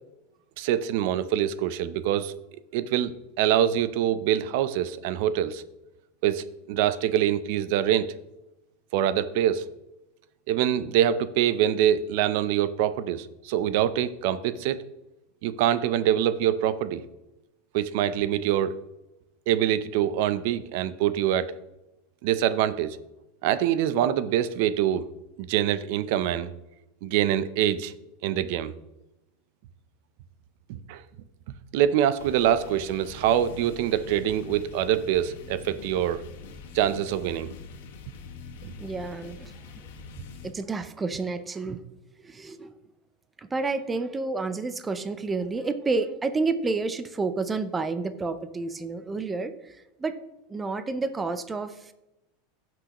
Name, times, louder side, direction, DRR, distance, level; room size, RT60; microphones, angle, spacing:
voice 1, 0.6-2.3 2.7-5.6 6.2-8.1 8.9-9.7 10.5-14.8 15.4-17.0 17.7-18.8 19.5-21.5 22.2-23.0 23.4-25.0 25.4-26.5 27.0-27.9 28.2-28.7 30.9-31.0 31.7-36.2 36.7-37.5 38.6-38.7, right 11 dB, 55° right, 14 dB, 0.6 m, -25 dB
sound 1, 32.2-40.5, left 5 dB, 80° left, 1.5 m, -44 dB
voice 2, 38.8-39.5 40.4-41.8 42.2-42.7 43.4-50.2 50.5-51.9, right 3 dB, 10° right, 11 dB, 0.5 m, -30 dB
15.0 x 6.1 x 3.0 m, 0.97 s
supercardioid pair, 160°, 0 cm